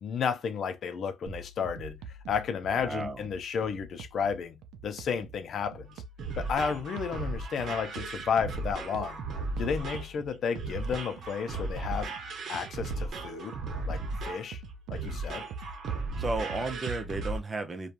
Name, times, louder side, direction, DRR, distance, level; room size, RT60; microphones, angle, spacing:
voice 1, 0.0-2.0 2.3-6.0 6.4-9.2 9.6-12.1 12.5-13.6 13.9-14.6 14.9-15.5, left 6 dB, 65° left, 0.5 m, -32 dB
sound 1, 1.3-17.1, right 4 dB, 85° right, 0.4 m, -45 dB
voice 2, 2.8-3.2 16.2-17.9, right 3 dB, 30° right, 0.6 m, -33 dB
sound 2, 5.9-17.4, right 2 dB, 60° right, 0.8 m, -36 dB
3.0 x 2.3 x 2.5 m
cardioid pair, 90°, 0 cm